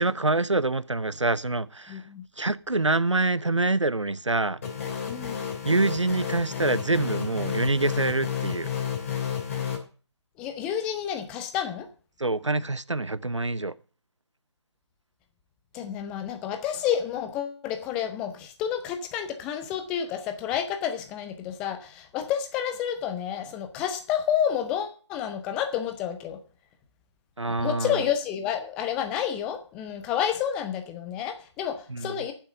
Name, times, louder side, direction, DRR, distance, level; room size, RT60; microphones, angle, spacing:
voice 1, 0.0-2.0 2.4-4.6 5.6-8.7 12.2-13.7 27.4-28.0 31.9-32.1, right 2 dB, 85° right, 0.8 m, -26 dB
voice 2, 1.9-2.3 5.0-5.5 10.4-11.9 15.7-26.4 27.6-32.3, left 9 dB, 5° left, 0.5 m, -30 dB
sound 1, 4.6-9.8, left 8 dB, 30° left, 3.0 m, -31 dB
9.0 x 7.4 x 9.0 m
figure-of-eight pair, 150°, 15 cm